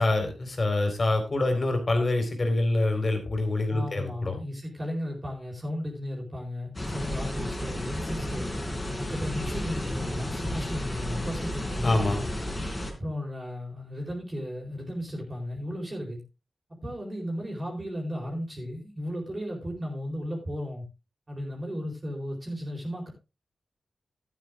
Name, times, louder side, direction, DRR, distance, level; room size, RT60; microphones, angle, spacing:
voice 1, 0.0-4.4 11.8-12.2, left 2 dB, 40° left, 3.9 m, -25 dB
voice 2, 3.7-8.5 9.0-12.3 13.0-16.2 16.8-20.8 21.3-23.1, equal, 30° right, 4.5 m, -35 dB
sound 1, 6.7-12.9, left 1 dB, 20° left, 3.7 m, -32 dB
12.0 x 9.4 x 3.6 m
wide cardioid pair, 110°, 0 cm